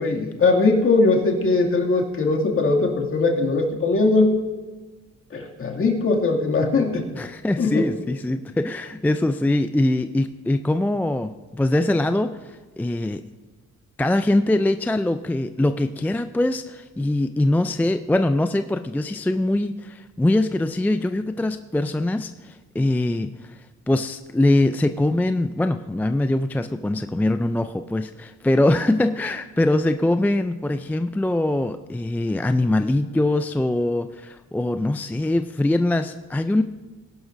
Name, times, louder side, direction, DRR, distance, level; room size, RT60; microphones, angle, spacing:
voice 1, 0.0-4.4 5.3-7.0 7.6-7.9, left 3 dB, 45° left, 0 dB, 2.3 m, -20 dB
voice 2, 7.1-13.2 14.0-23.6 23.9-36.6, left 1 dB, 5° left, 9 dB, 0.3 m, -22 dB
19.5 x 11.0 x 2.6 m, 1.3 s
cardioid pair, 90°, 30 cm